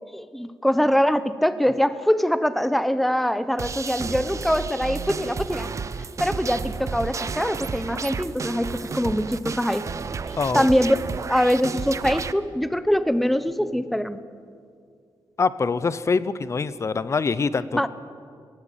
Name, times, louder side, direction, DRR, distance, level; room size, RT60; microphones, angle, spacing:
voice 1, 0.0-5.7 6.2-9.9 10.5-14.2 17.7-17.9, equal, ahead, 13 dB, 0.8 m, -23 dB
sound 1, 3.6-12.3, right 5 dB, 40° right, 0.7 m, -32 dB
voice 2, 10.4-10.7 15.4-17.8, left 4 dB, 35° left, 16 dB, 0.7 m, -24 dB
19.0 x 17.0 x 9.1 m, 2.2 s
wide cardioid pair, 135°, 8 cm